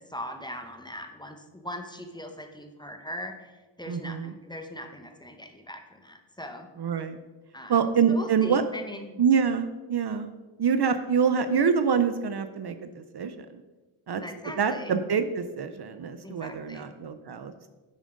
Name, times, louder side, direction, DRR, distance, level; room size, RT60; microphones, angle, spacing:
voice 1, 0.0-6.7 7.5-9.2 14.2-14.9 16.2-17.0, left 1 dB, 10° left, 5 dB, 0.9 m, -40 dB
voice 2, 3.9-4.3 6.8-7.2 7.7-8.6 9.2-10.3 10.6-13.6 14.1-14.2 14.6-17.7, right 6 dB, 55° right, 10 dB, 0.6 m, -26 dB
10.5 x 7.4 x 3.9 m, 1.2 s
wide cardioid pair, 110°, 48 cm